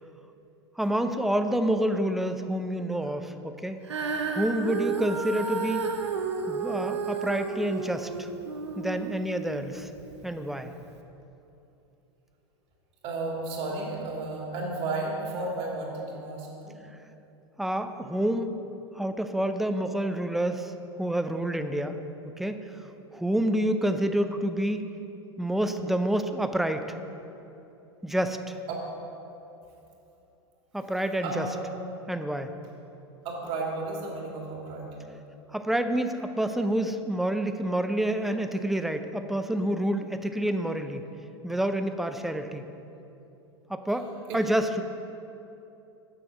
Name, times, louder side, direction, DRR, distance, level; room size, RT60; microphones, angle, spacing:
voice 1, 0.8-3.8 4.3-5.9 6.5-8.3 8.8-9.9 10.2-10.7 17.6-18.5 18.9-20.7 21.0-22.0 22.4-22.8 23.1-24.8 25.4-26.9 28.0-28.6 30.7-31.5 32.1-32.5 35.5-41.1 41.4-42.7 43.7-44.1 44.3-44.8, right 1 dB, ahead, 8 dB, 0.5 m, -28 dB
Female singing, 3.8-10.2 10.9-11.0, right 4 dB, 85° right, 0.7 m, -32 dB
voice 2, 13.0-16.8 28.7-28.8 31.2-31.6 33.2-35.0 44.3-44.4, right 2 dB, 45° right, -2 dB, 2.3 m, -33 dB
7.6 x 6.2 x 6.1 m, 2.9 s
hypercardioid pair, 90°, 14 cm